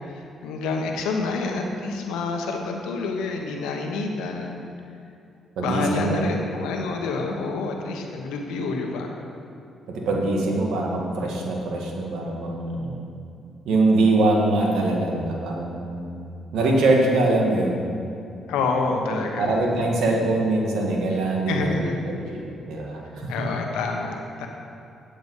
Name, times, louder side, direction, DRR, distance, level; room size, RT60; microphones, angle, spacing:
voice 1, 0.1-4.6 5.6-9.1 18.5-19.5 21.5-21.9 23.3-24.5, left 4 dB, 85° left, 2 dB, 1.1 m, -28 dB
voice 2, 5.6-6.2 10.1-13.0 13.7-16.2 16.5-17.9 19.4-23.3, right 2 dB, 80° right, -1 dB, 1.7 m, -23 dB
8.7 x 8.1 x 5.4 m, 2.6 s
supercardioid pair, 70°, 0 cm